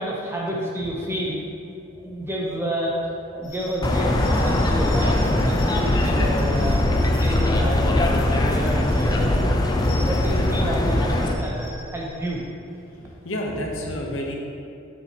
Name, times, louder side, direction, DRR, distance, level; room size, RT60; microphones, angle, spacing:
voice 1, 0.0-1.4 1.9-2.9 3.3-6.8 7.1-9.5 9.9-12.4, equal, 10° right, -4 dB, 0.8 m, -29 dB
sound 1, 3.4-12.3, equal, 60° left, 1.2 m, -42 dB
sound 2, 3.8-11.3, left 1 dB, 20° left, 0.4 m, -21 dB
voice 2, 13.2-14.3, equal, 80° left, 0 dB, 0.9 m, -29 dB
7.5 x 6.2 x 2.9 m, 2.6 s
head